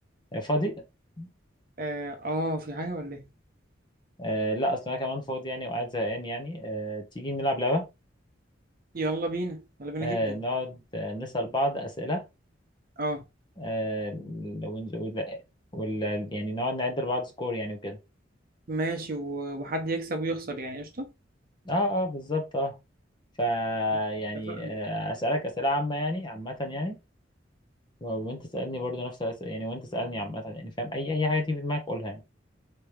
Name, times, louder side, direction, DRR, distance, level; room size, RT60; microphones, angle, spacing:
voice 1, 0.3-0.8 1.2-1.3 4.2-7.9 10.0-12.2 13.6-15.4 15.7-18.0 21.6-22.8 23.4-27.0 28.0-32.2, equal, 25° left, 0.8 m, -30 dB
voice 2, 1.8-3.3 8.9-10.4 13.0-13.2 18.7-21.1 24.5-24.7, right 2 dB, 50° right, 0.8 m, -32 dB
3.4 x 3.0 x 3.2 m
head